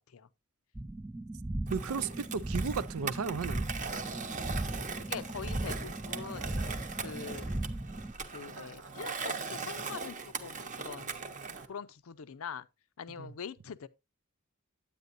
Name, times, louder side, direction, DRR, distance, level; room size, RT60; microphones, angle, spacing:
sound 1, 0.7-8.1, right 1 dB, 10° right, 0.3 m, -37 dB
Skateboard, 1.7-11.7, right 5 dB, 35° right, 0.9 m, -40 dB
voice 1, 1.7-3.7 13.2-13.3, right 5 dB, 75° right, 0.5 m, -34 dB
voice 2, 5.1-6.5 7.0-7.6 8.3-11.3 11.7-12.7 13.0-13.9, left 6 dB, 70° left, 0.5 m, -43 dB
Chuckle chortle, 6.4-6.9 8.5-9.1 11.4-11.8, right 3 dB, 60° right, 1.1 m, -53 dB
9.4 x 8.6 x 2.6 m
head